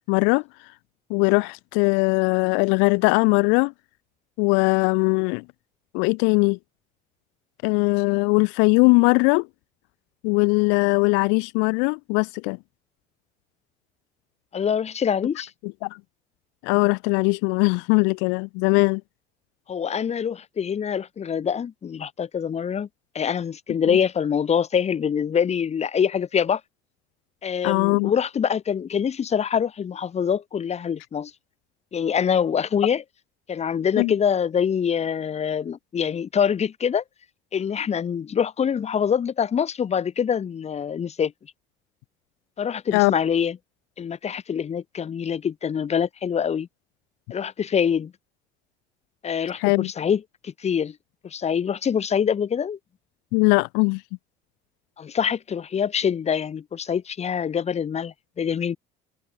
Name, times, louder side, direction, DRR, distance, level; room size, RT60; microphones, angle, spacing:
voice 1, 0.1-0.4 1.1-3.7 4.4-5.4 5.9-6.6 7.6-9.5 10.2-12.6 15.6-15.9 16.6-19.0 23.9-24.0 27.6-28.1 34.0-34.1 42.9-43.1 49.6-49.9 53.3-54.0, left 33 dB, 90° left, 3.7 m, -20 dB
voice 2, 14.5-15.5 19.7-22.9 23.1-26.6 27.4-31.3 31.9-33.0 33.5-37.0 37.5-41.3 42.6-43.6 44.0-46.7 47.3-48.1 49.2-50.9 51.2-52.8 55.0-58.8, left 7 dB, 35° left, 6.9 m, -25 dB
cardioid pair, 120°, 19 cm